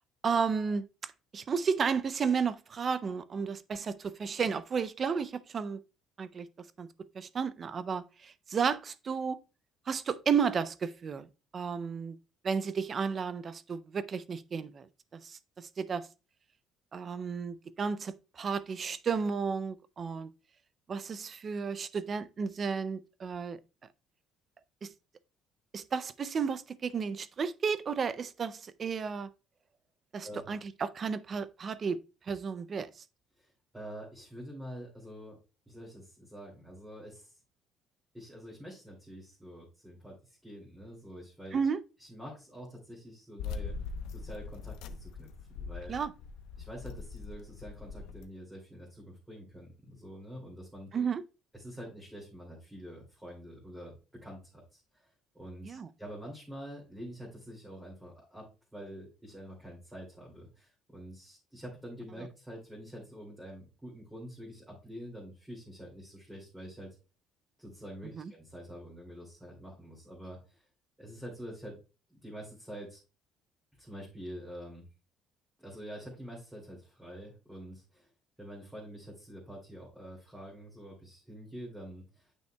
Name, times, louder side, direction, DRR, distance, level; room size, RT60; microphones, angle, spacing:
voice 1, 0.2-0.9 1.3-5.8 6.2-6.5 6.8-6.9 7.2-9.4 9.9-11.3 11.5-12.2 12.4-14.9 15.2-16.1 16.9-20.3 20.9-23.6 24.8-24.9 25.7-29.3 30.1-32.0 32.3-32.9 41.5-41.8 45.9-46.1 50.9-51.2 55.7-55.9 68.2-68.3, right 6 dB, 30° right, 0.4 m, -32 dB
voice 2, 30.2-30.5 33.4-35.4 35.7-37.4 38.1-41.6 42.0-43.7 44.1-45.3 45.5-45.9 46.6-50.9 51.5-67.0 67.6-70.6 71.0-71.8 72.1-73.0 73.8-74.8 75.6-78.1 78.4-82.3, equal, 5° right, 2.4 m, -46 dB
sound 1, 43.4-48.2, left 5 dB, 90° left, 0.7 m, -41 dB
9.3 x 5.5 x 2.2 m
cardioid pair, 155°, 0 cm